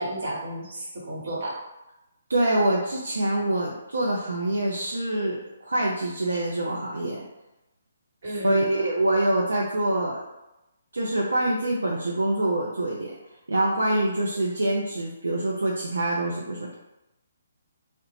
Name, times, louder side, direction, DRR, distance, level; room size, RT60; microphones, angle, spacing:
voice 1, 0.0-1.6 8.2-8.7, right 1 dB, 60° right, -5 dB, 1.1 m, -32 dB
voice 2, 2.3-7.2 8.4-10.2 10.9-13.1 13.5-16.7, right 1 dB, 80° right, -3 dB, 0.4 m, -25 dB
2.7 x 2.0 x 3.0 m, 0.94 s
figure-of-eight pair, 140°, 0 cm